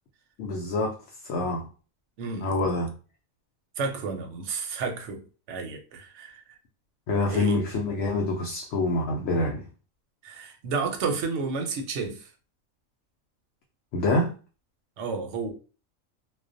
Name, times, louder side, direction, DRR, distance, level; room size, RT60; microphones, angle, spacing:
voice 1, 0.4-1.0 1.2-1.6 2.4-2.9 7.1-9.7 13.9-14.3, left 2 dB, 65° left, 0.8 m, -26 dB
voice 2, 2.2-2.5 3.8-6.6 7.3-7.6 10.2-12.3 15.0-15.5, right 4 dB, 65° right, 0.8 m, -31 dB
2.3 x 2.1 x 2.5 m
omnidirectional pair, 1.4 m